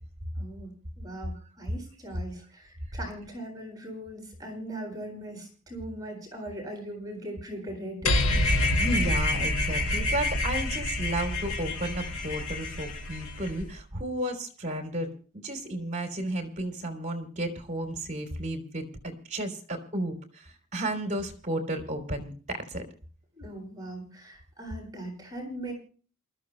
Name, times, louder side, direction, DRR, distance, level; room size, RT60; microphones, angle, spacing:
voice 1, 0.4-8.5 23.4-25.7, right 1 dB, 15° right, 0 dB, 7.8 m, -40 dB
sound 1, 8.1-13.7, left 2 dB, 75° left, 2.2 m, -27 dB
voice 2, 8.8-15.1 15.4-22.8, right 1 dB, 35° right, 5 dB, 3.4 m, -33 dB
28.0 x 14.0 x 2.2 m, 0.40 s
head